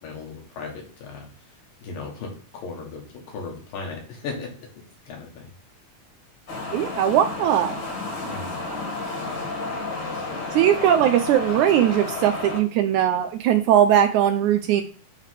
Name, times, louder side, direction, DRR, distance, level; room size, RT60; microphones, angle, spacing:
voice 1, 0.0-1.3 1.8-4.5 5.1-5.5 8.2-8.5, left 4 dB, 90° left, 0 dB, 3.4 m, -36 dB
sound 1, 6.5-12.6, left 3 dB, 45° left, 1.6 m, -31 dB
voice 2, 6.7-7.8 10.5-14.8, right 10 dB, 80° right, 7 dB, 1.7 m, -19 dB
7.3 x 3.3 x 5.8 m, 0.42 s
omnidirectional pair, 3.8 m